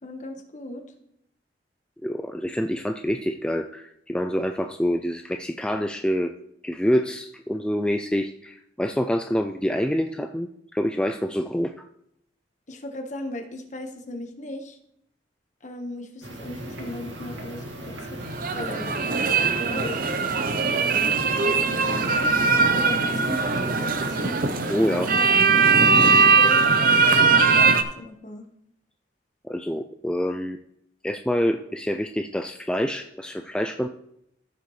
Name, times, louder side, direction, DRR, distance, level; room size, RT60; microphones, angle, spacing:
voice 1, 0.0-0.8 12.7-14.8 15.6-18.2 18.5-24.4 25.1-25.7 26.4-28.5, left 1 dB, 40° left, 4 dB, 1.3 m, -37 dB
voice 2, 2.0-6.3 6.6-11.7 24.7-25.1 29.4-30.6 31.0-33.9, equal, 5° left, 5 dB, 0.3 m, -26 dB
sound 1, 16.2-25.2, equal, 75° right, 2.0 m, -37 dB
sound 2, 18.2-27.8, right 4 dB, 50° right, 0.7 m, -20 dB
14.0 x 6.7 x 3.2 m, 0.75 s
head